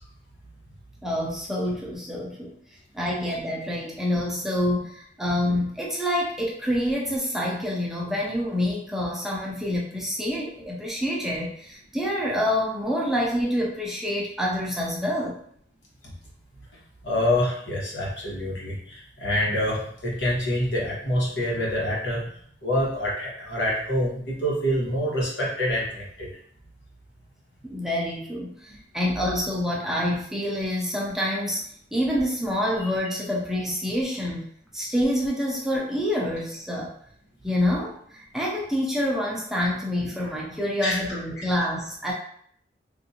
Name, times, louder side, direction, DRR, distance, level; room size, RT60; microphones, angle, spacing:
voice 1, 1.0-2.5 2.9-15.4 27.6-31.6 31.9-34.4 34.7-36.9 37.4-42.1, left 1 dB, 5° right, -4 dB, 0.5 m, -27 dB
voice 2, 17.0-22.3 22.6-26.3 40.8-41.0 41.4-41.5, left 1 dB, 80° left, -5 dB, 1.3 m, -26 dB
3.6 x 2.6 x 2.8 m, 0.63 s
head